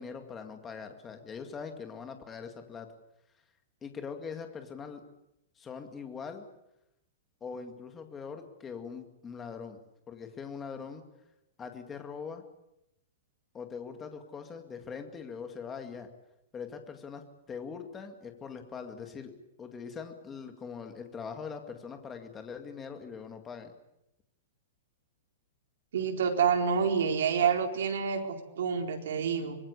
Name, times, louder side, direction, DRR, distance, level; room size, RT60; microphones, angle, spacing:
voice 1, 0.0-2.9 3.8-5.0 5.6-6.4 7.4-9.8 10.1-11.0 11.6-12.4 13.5-16.1 16.5-17.2 17.5-19.3 19.6-23.7, left 6 dB, 10° left, 6 dB, 2.2 m, -42 dB
voice 2, 25.9-29.6, right 6 dB, 70° right, 3 dB, 4.3 m, -28 dB
25.5 x 21.5 x 8.4 m, 0.85 s
supercardioid pair, 175°, 0 cm